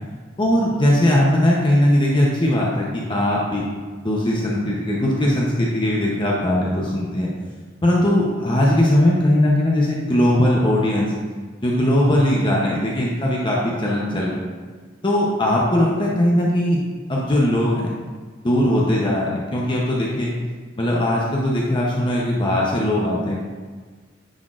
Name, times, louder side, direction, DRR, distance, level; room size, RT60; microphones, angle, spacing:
voice 1, 0.4-3.6 4.0-7.3 7.8-11.1 11.6-14.5 15.0-16.8 17.1-17.9 18.4-20.3 20.8-23.4, left 1 dB, 25° left, -3 dB, 0.7 m, -19 dB
9.6 x 4.3 x 2.4 m, 1.5 s
head